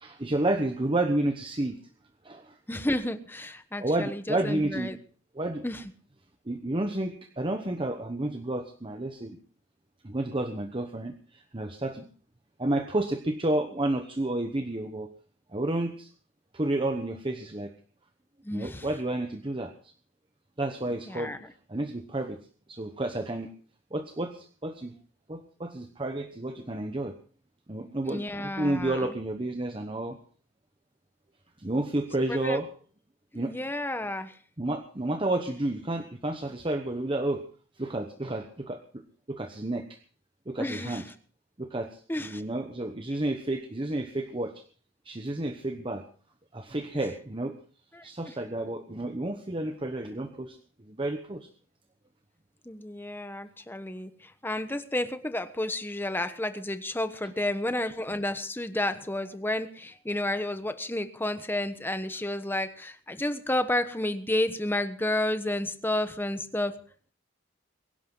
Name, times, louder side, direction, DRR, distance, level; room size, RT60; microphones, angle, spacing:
voice 1, 0.0-1.8 2.2-2.4 3.8-5.0 5.4-5.6 6.5-9.4 10.0-11.1 11.5-12.0 12.6-15.1 15.5-16.1 16.5-17.7 18.5-19.7 20.6-21.3 21.7-22.4 22.7-23.5 23.9-24.9 25.3-27.1 27.7-30.2 31.6-32.7 33.3-33.5 34.6-37.4 37.8-38.8 39.3-39.9 40.5-41.0 41.6-41.9 42.2-44.5 45.1-46.0 46.5-47.5 48.0-50.6 50.9-51.5, right 1 dB, 25° right, 6 dB, 1.0 m, -30 dB
voice 2, 2.7-5.0 5.6-5.8 18.4-18.9 21.1-21.5 28.0-29.2 32.3-32.6 33.3-34.4 40.6-41.1 42.1-42.4 47.9-48.1 52.6-66.8, left 1 dB, 10° left, 9 dB, 1.2 m, -31 dB
22.5 x 11.5 x 3.9 m, 0.42 s
head